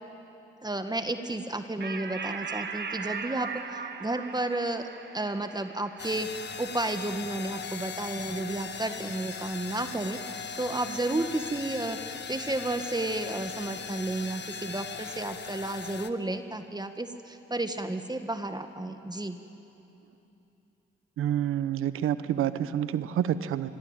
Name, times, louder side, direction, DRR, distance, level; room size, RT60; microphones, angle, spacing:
voice 1, 0.6-4.9 5.1-6.3 6.6-19.4, right 2 dB, 20° right, 7 dB, 1.7 m, -32 dB
sound 1, 1.8-8.7, right 5 dB, 55° right, 1.8 m, -39 dB
sound 2, 6.0-16.1, left 6 dB, 55° left, 1.2 m, -39 dB
voice 2, 21.2-23.7, right 10 dB, 85° right, 14 dB, 0.9 m, -28 dB
26.5 x 21.5 x 9.0 m, 2.9 s
supercardioid pair, 50°, 21 cm